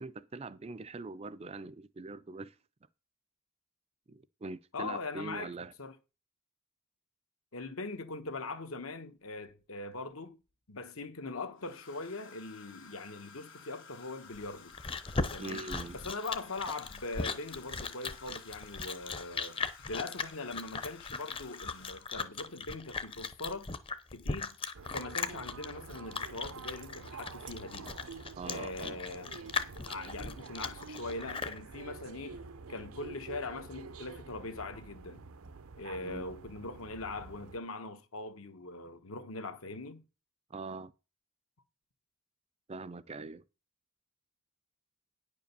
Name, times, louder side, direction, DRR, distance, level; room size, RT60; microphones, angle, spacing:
voice 1, 0.0-2.6 4.1-5.7 15.4-16.0 28.4-29.0 36.0-36.3 40.5-40.9 42.7-43.4, right 3 dB, 30° right, 0.4 m, -42 dB
voice 2, 4.7-5.5 5.8-5.9 7.5-10.4 10.7-14.7 15.3-19.6 19.9-23.7 24.1-24.6 24.9-27.9 28.4-29.5 29.9-32.4 32.7-35.2 35.8-40.0, left 3 dB, 75° left, 1.2 m, -41 dB
Domestic sounds home sounds, 9.6-10.1 11.5-22.3 23.5-23.8 24.1-24.4, left 6 dB, 60° left, 2.0 m, -54 dB
Chewing mastication, 14.3-31.6, left 4 dB, 25° left, 0.7 m, -38 dB
sound 1, 24.7-37.6, right 4 dB, 75° right, 0.7 m, -48 dB
9.7 x 5.1 x 6.8 m
head